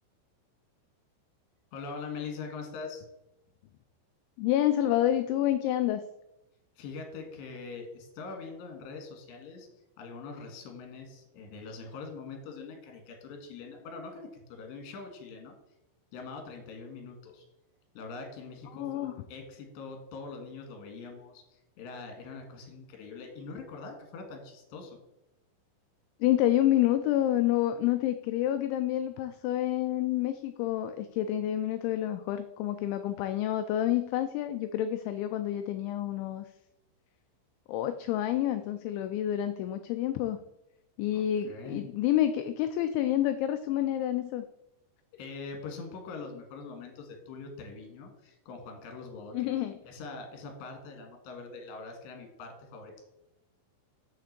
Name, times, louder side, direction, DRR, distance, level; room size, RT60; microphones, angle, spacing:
voice 1, 1.7-3.1 6.8-9.7 10.0-15.5 16.1-17.5 18.0-25.0 41.1-41.8 45.1-49.5 49.8-53.0, left 4 dB, 65° left, 3 dB, 3.6 m, -43 dB
voice 2, 4.4-6.0 18.7-19.1 26.2-36.5 37.7-40.4 41.0-44.4 49.3-49.8, left 12 dB, 90° left, 9 dB, 2.6 m, -28 dB
7.5 x 5.8 x 6.6 m, 0.89 s
omnidirectional pair, 5.8 m